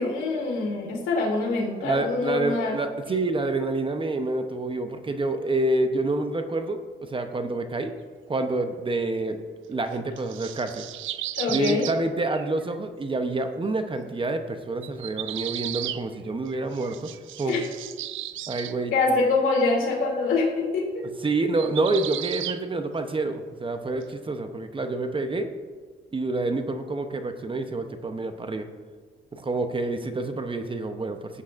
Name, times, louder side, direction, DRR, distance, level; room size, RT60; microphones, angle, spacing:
voice 1, 0.0-2.8 11.4-11.9 17.5-17.6 18.9-21.0, left 3 dB, 80° left, -3 dB, 2.9 m, -24 dB
voice 2, 1.8-7.9 8.3-9.4 9.7-10.8 11.5-17.1 17.4-17.6 18.5-18.9 21.2-25.5 26.1-28.7 29.3-31.4, right 2 dB, 25° right, 7 dB, 0.9 m, -28 dB
sound 1, 10.2-12.8 14.8-18.7 20.8-21.1 21.6-22.6 24.0-24.1, right 13 dB, 80° right, 0.5 m, -35 dB
16.0 x 8.3 x 2.6 m, 1.5 s
cardioid pair, 90°, 20 cm